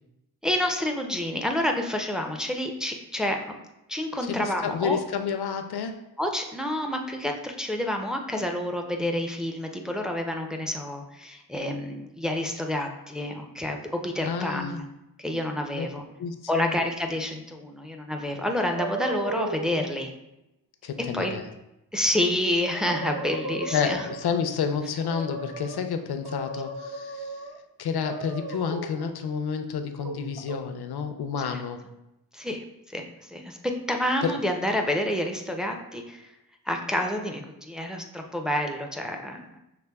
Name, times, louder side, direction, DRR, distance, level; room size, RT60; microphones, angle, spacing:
voice 1, 0.4-3.5 3.9-5.0 6.2-14.8 15.2-16.0 16.5-20.1 21.1-21.3 21.9-24.0 31.4-31.6 32.3-36.3 36.7-39.6, left 1 dB, ahead, 3 dB, 0.3 m, -29 dB
voice 2, 4.2-6.0 14.2-14.8 15.7-15.9 16.2-16.8 20.8-21.5 23.7-27.4 27.8-31.8 34.2-34.3, left 6 dB, 75° left, 7 dB, 0.5 m, -30 dB
sound 1, 18.7-19.8 22.3-22.4 22.7-24.4 25.0-25.8 26.2-27.6 28.1-29.1 30.0-30.6, right 2 dB, 65° right, 0.6 m, -35 dB
5.9 x 3.3 x 2.2 m, 0.90 s
wide cardioid pair, 105°, 39 cm